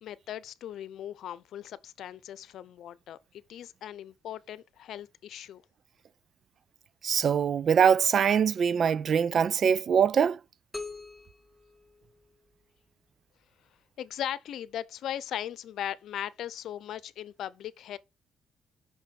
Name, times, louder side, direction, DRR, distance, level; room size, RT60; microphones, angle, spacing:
voice 1, 0.0-5.6 14.0-18.0, left 11 dB, 75° left, 0.7 m, -38 dB
voice 2, 7.0-10.4, right 7 dB, 55° right, 0.4 m, -23 dB
sound 1, 10.7-12.6, left 3 dB, 5° left, 1.9 m, -43 dB
6.0 x 5.5 x 6.9 m
cardioid pair, 90°, 0 cm